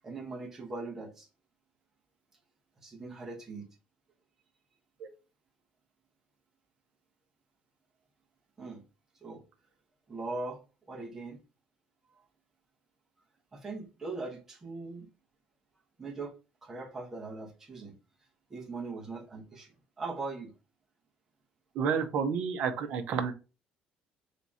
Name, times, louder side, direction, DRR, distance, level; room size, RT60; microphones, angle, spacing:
voice 1, 0.0-1.3 2.8-3.7 8.6-8.8 9.2-9.4 10.1-10.6 10.9-11.4 12.1-12.2 13.5-15.1 16.0-16.3 16.6-18.0 18.5-20.5, right 3 dB, 15° right, 1.0 m, -40 dB
voice 2, 21.7-23.3, right 6 dB, 50° right, 0.7 m, -30 dB
3.6 x 2.9 x 4.1 m
cardioid pair, 175°, 3 cm